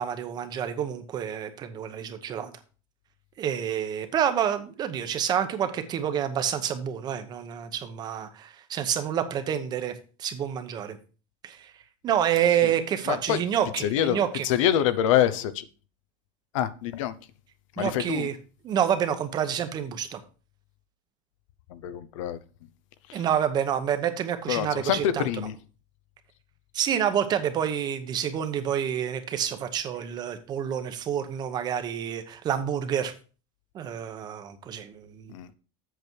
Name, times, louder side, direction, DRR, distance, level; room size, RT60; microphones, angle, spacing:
voice 1, 0.0-2.5 3.4-9.9 10.2-11.0 11.4-11.7 12.0-14.5 17.8-18.4 18.6-20.2 23.1-25.3 26.7-33.1 33.7-35.3, right 9 dB, 25° right, 0.9 m, -28 dB
voice 2, 13.1-13.4 13.8-15.6 16.5-17.1 17.8-18.3 21.7-22.4 23.1-23.2 24.5-25.5 35.3-35.5, left 11 dB, 85° left, 0.9 m, -26 dB
8.1 x 6.8 x 4.6 m
supercardioid pair, 170°, 16 cm